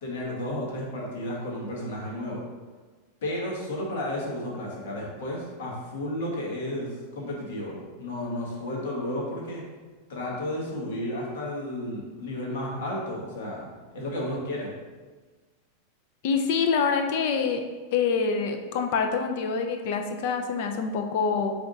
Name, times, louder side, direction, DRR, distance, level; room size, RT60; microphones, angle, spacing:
voice 1, 0.0-2.4 3.2-9.6 10.1-14.7, left 1 dB, 70° left, -3 dB, 1.4 m, -32 dB
voice 2, 16.2-17.6 17.9-21.5, left 5 dB, 50° left, 5 dB, 0.5 m, -26 dB
3.7 x 3.5 x 4.0 m, 1.3 s
supercardioid pair, 170°, 0 cm